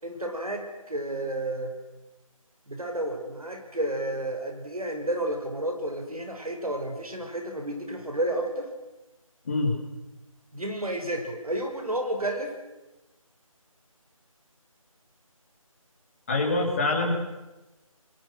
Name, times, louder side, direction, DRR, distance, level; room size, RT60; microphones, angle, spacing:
voice 1, 0.0-1.7 2.7-8.7 10.5-12.5, right 1 dB, 85° right, 4 dB, 5.8 m, -31 dB
voice 2, 16.3-17.1, left 2 dB, 20° left, 0 dB, 3.7 m, -24 dB
29.5 x 22.0 x 6.3 m, 1.1 s
figure-of-eight pair, 170°, 18 cm